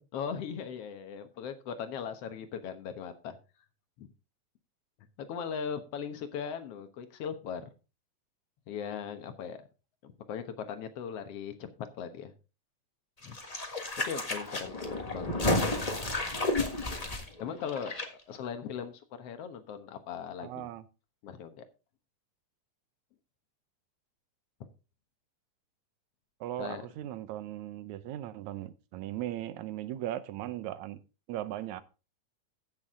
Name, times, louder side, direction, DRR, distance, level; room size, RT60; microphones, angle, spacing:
voice 1, 0.1-3.4 4.0-4.1 5.2-7.7 8.7-9.6 10.0-12.3 13.2-13.4 14.1-15.7 17.4-17.9 18.3-20.7 21.2-21.7 26.6-26.9, left 7 dB, 60° left, 2.0 m, -39 dB
sound 1, 13.2-18.1 18.3-18.4, left 2 dB, 25° left, 0.8 m, -32 dB
voice 2, 20.4-20.8 26.4-31.0 31.3-31.8, right 13 dB, 75° right, 2.1 m, -38 dB
15.5 x 6.4 x 3.7 m
omnidirectional pair, 3.4 m